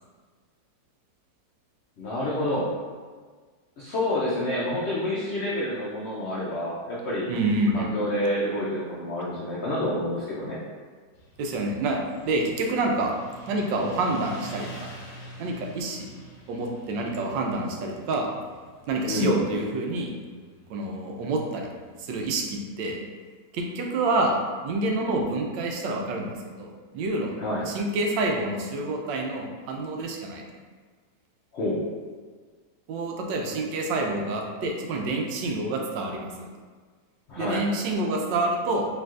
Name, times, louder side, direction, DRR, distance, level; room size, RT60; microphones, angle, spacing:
voice 1, 2.0-2.7 3.8-7.3 7.7-10.6 19.0-19.4 27.4-27.7 31.5-31.8 37.3-37.6, left 1 dB, 85° left, -6 dB, 0.6 m, -28 dB
voice 2, 7.3-7.9 11.4-12.0 12.2-13.1 13.5-14.9 15.4-16.1 16.5-18.3 18.9-20.1 20.7-21.7 22.0-23.0 23.5-24.3 24.6-27.3 27.6-30.4 32.9-36.5 37.4-38.9, right 2 dB, 80° right, 1 dB, 1.3 m, -27 dB
Motorcycle, 11.1-22.3, right 2 dB, 45° left, 1.2 m, -46 dB
4.5 x 3.3 x 2.4 m, 1.5 s
omnidirectional pair, 1.9 m